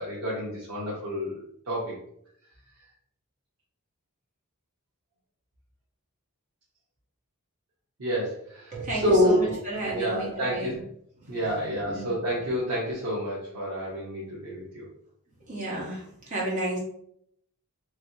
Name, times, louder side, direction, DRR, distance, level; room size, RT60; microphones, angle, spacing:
voice 1, 0.0-2.0 8.0-9.6 9.9-10.8 11.3-14.9, equal, 85° right, -7 dB, 0.9 m, -28 dB
voice 2, 8.7-10.8 11.9-12.1 15.5-16.8, right 2 dB, 35° right, -5 dB, 1.1 m, -32 dB
3.1 x 2.8 x 2.7 m, 0.71 s
head